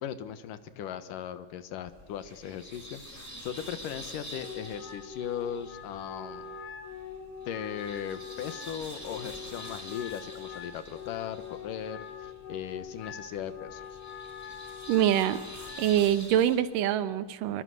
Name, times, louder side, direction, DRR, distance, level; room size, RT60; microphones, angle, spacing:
voice 1, 0.0-6.5 7.5-14.0, left 9 dB, 80° left, 12 dB, 2.8 m, -38 dB
sound 1, 1.9-16.6, equal, 5° left, 5.3 m, -47 dB
Wind instrument woodwind instrument, 4.3-16.0, left 7 dB, 55° left, 4.0 m, -43 dB
voice 2, 14.9-15.4 15.8-17.6, right 11 dB, 80° right, 13 dB, 2.6 m, -25 dB
24.5 x 23.5 x 8.1 m, 1.2 s
omnidirectional pair, 3.8 m